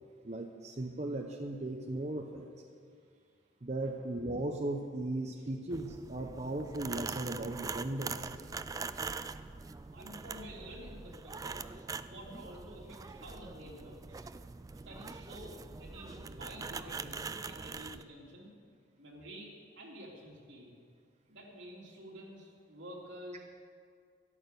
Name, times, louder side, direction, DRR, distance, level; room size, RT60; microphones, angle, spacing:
voice 1, 0.2-2.5 3.6-8.3, right 2 dB, 35° right, 3 dB, 0.8 m, -37 dB
sound 1, 5.7-18.0, right 4 dB, 20° right, 0.3 m, -43 dB
voice 2, 9.9-11.7 12.0-14.3 14.8-18.5 19.0-20.7 21.3-23.4, equal, 80° right, -2 dB, 3.2 m, -49 dB
13.5 x 11.0 x 6.8 m, 2.3 s
head